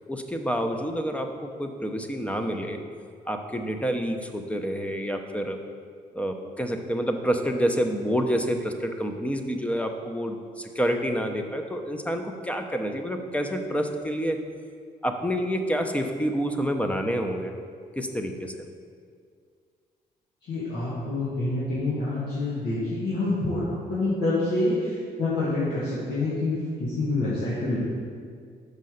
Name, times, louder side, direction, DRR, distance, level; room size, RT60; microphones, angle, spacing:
voice 1, 0.1-2.8 3.3-5.6 6.1-14.4 15.0-17.5 18.0-18.5, equal, 10° left, 5 dB, 0.8 m, -28 dB
voice 2, 20.4-27.8, left 2 dB, 75° left, -9 dB, 1.8 m, -27 dB
5.6 x 5.2 x 6.5 m, 2.2 s
supercardioid pair, 75°, 17 cm